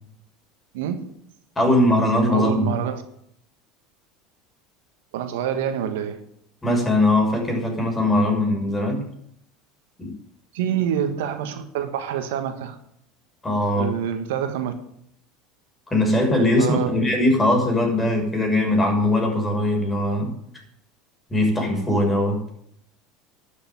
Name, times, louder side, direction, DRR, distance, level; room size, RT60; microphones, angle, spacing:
voice 1, 0.7-1.1 2.3-3.0 5.1-6.2 10.5-12.8 13.7-14.7 16.6-16.9, right 9 dB, 80° right, 1.6 m, -26 dB
voice 2, 1.6-2.7 6.6-9.0 10.0-10.1 13.4-13.9 15.9-20.3 21.3-22.4, left 1 dB, 15° left, 6.2 m, -20 dB
12.0 x 7.0 x 9.5 m
hypercardioid pair, 90°, 0 cm